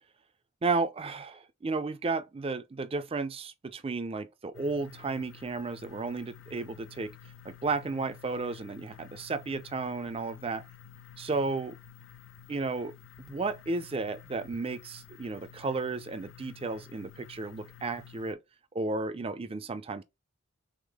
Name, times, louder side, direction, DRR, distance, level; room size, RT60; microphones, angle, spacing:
voice 1, 0.6-7.1 7.4-10.6 11.2-11.8 12.5-12.9 13.2-18.4 18.7-20.0, right 3 dB, 30° right, 0.4 m, -33 dB
sound 1, 4.5-18.3, left 8 dB, 70° left, 0.4 m, -52 dB
3.6 x 3.5 x 3.4 m
head